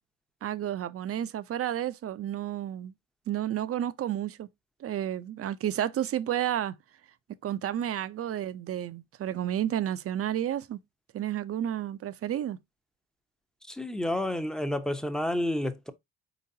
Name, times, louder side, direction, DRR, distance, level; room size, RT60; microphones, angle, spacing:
voice 1, 0.4-2.9 3.3-4.5 4.8-6.8 7.4-10.8 11.1-12.6, right 11 dB, 50° right, 0.5 m, -31 dB
voice 2, 13.7-15.9, left 1 dB, ahead, 0.7 m, -30 dB
4.4 x 3.9 x 2.7 m
cardioid pair, 90°, 30 cm